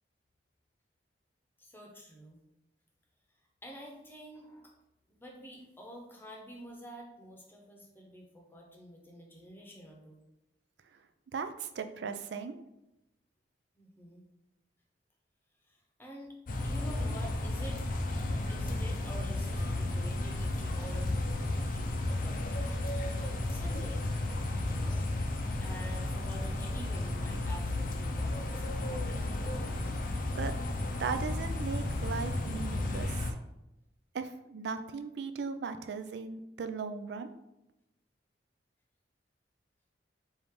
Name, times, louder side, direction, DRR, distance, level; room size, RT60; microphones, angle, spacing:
voice 1, 1.6-2.4 3.6-4.7 5.2-10.3 13.8-14.2 15.7-16.3 16.6-17.8 18.5-22.7 23.5-24.1 24.6-25.3 25.6-29.6, equal, 10° left, 0 dB, 0.8 m, -48 dB
voice 2, 11.3-12.5 30.4-30.6 31.0-33.3 34.1-37.3, right 5 dB, 70° right, 9 dB, 0.4 m, -37 dB
sound 1, 16.5-33.3, left 2 dB, 50° left, 0.5 m, -33 dB
4.8 x 2.6 x 3.6 m, 0.91 s
head